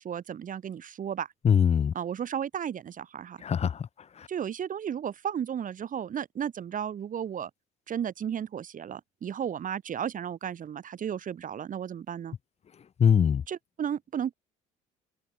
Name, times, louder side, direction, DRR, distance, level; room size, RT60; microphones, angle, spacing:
voice 1, 0.0-1.3 1.9-3.4 4.3-7.5 7.9-12.4 13.5-14.3, right 8 dB, 50° right, 3.9 m, -34 dB
voice 2, 1.4-1.9 3.4-3.9 4.2-4.3 13.0-13.4, left 7 dB, 35° left, 0.9 m, -22 dB
open air
hypercardioid pair, 65°, 18 cm